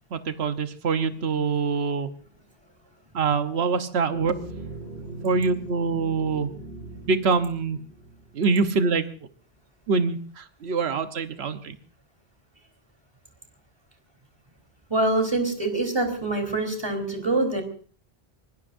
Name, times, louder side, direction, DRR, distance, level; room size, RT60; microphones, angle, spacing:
voice 1, 0.1-2.1 3.1-4.3 5.2-6.5 7.1-7.8 8.3-9.1 9.9-11.8, right 4 dB, 75° right, 8 dB, 1.3 m, -24 dB
sound 1, 4.1-8.7, right 2 dB, 60° right, 7.7 m, -40 dB
voice 2, 14.9-17.6, right 2 dB, 25° right, 5 dB, 3.7 m, -25 dB
25.0 x 20.5 x 2.6 m, 0.43 s
omnidirectional pair, 1.1 m